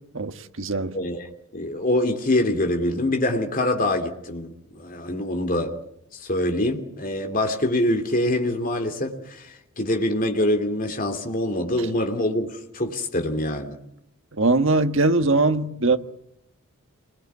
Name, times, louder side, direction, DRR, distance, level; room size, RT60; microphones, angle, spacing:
voice 1, 0.1-0.9 14.4-16.0, right 3 dB, 60° right, 1.6 m, -21 dB
voice 2, 0.9-1.3 1.5-5.7 6.1-13.8, left 1 dB, 40° left, 2.8 m, -25 dB
28.0 x 21.0 x 9.6 m
head